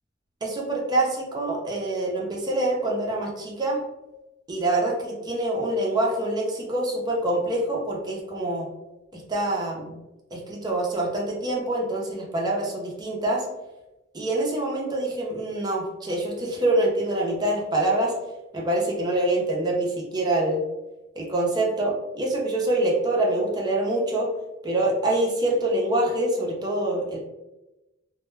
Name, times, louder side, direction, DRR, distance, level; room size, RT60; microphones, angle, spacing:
voice 1, 0.4-3.8 4.5-8.7 9.1-10.0 10.3-13.5 14.1-18.1 18.5-20.6 21.2-24.3 24.6-27.2, right 1 dB, 20° right, -2 dB, 0.5 m, -25 dB
2.1 x 2.1 x 3.1 m, 0.99 s
head